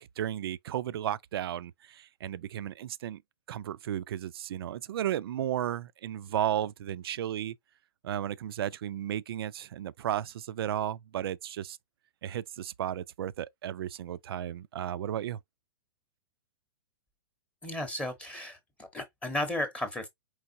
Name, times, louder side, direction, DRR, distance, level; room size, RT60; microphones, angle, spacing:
voice 1, 0.0-3.2 3.5-7.6 8.0-11.8 12.2-15.4, right 11 dB, 65° right, 0.4 m, -34 dB
voice 2, 17.6-20.1, left 1 dB, 10° left, 0.8 m, -34 dB
4.7 x 3.4 x 2.6 m
hypercardioid pair, 135°, 13 cm